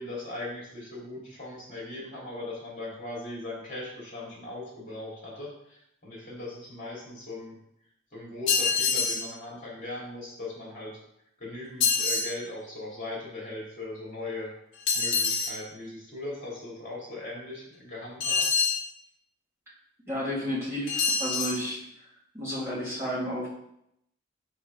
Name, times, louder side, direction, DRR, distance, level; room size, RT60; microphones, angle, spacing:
voice 1, 0.0-7.6 8.1-11.0 11.4-14.5 14.9-18.5, left 2 dB, 40° left, -4 dB, 2.7 m, -39 dB
sound 1, 8.5-9.3 11.8-12.3 14.9-15.6 18.2-18.8 20.9-21.6, left 5 dB, 65° left, 0.7 m, -25 dB
voice 2, 20.1-21.8 22.3-23.5, equal, 10° right, -7 dB, 2.0 m, -31 dB
4.8 x 4.3 x 5.2 m, 0.76 s
head